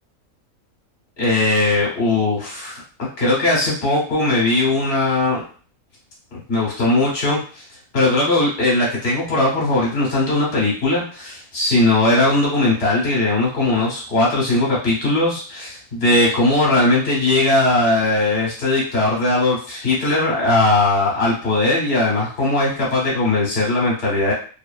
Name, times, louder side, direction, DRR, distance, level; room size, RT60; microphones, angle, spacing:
voice 1, 1.2-2.8 3.2-5.4 6.3-7.6 7.9-24.3, left 2 dB, 45° left, -5 dB, 1.2 m, -19 dB
2.7 x 2.6 x 2.3 m, 0.41 s
omnidirectional pair, 1.5 m